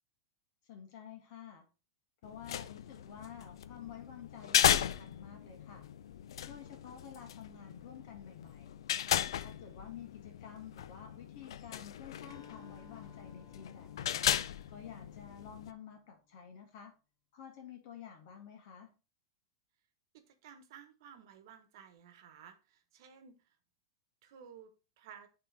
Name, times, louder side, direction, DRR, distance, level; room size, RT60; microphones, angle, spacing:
voice 1, 0.6-1.7 2.2-5.9 6.5-8.8 9.4-14.3 14.7-16.9 17.3-18.9, left 8 dB, 50° left, 3 dB, 2.1 m, -51 dB
sound 1, 2.2-15.7, left 10 dB, 85° left, 0.5 m, -36 dB
Acoustic guitar, 12.3-16.1, left 7 dB, 35° left, 2.1 m, -59 dB
voice 2, 20.1-23.6 24.2-25.3, right 7 dB, 60° right, 9 dB, 1.1 m, -55 dB
9.0 x 3.9 x 4.0 m, 0.31 s
supercardioid pair, 160°, 3 cm